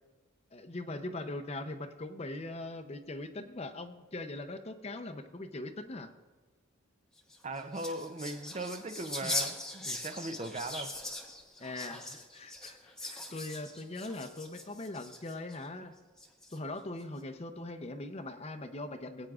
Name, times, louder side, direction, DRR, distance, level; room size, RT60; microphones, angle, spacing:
voice 1, 0.5-6.1 11.6-15.9 16.5-19.3, left 2 dB, 30° left, 8 dB, 0.6 m, -41 dB
sound 1, 7.2-15.6 16.2-16.8, left 1 dB, 5° left, 0.9 m, -41 dB
voice 2, 7.4-11.0, right 2 dB, 30° right, 8 dB, 0.5 m, -39 dB
20.5 x 8.9 x 2.4 m, 1.3 s
head